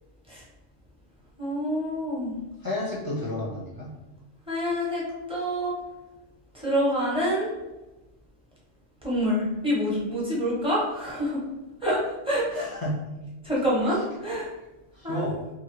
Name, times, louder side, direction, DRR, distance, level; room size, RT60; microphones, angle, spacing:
voice 1, 1.4-2.3 4.5-5.0 5.3-5.7 6.6-7.5 9.0-11.4 11.8-12.0 12.3-12.5 13.4-14.5 15.0-15.2, equal, 5° right, -7 dB, 0.8 m, -26 dB
voice 2, 2.6-3.9 12.5-13.0 13.9-14.0 15.0-15.4, left 1 dB, 25° left, -6 dB, 0.7 m, -31 dB
2.7 x 2.6 x 3.1 m, 1.0 s
omnidirectional pair, 1.2 m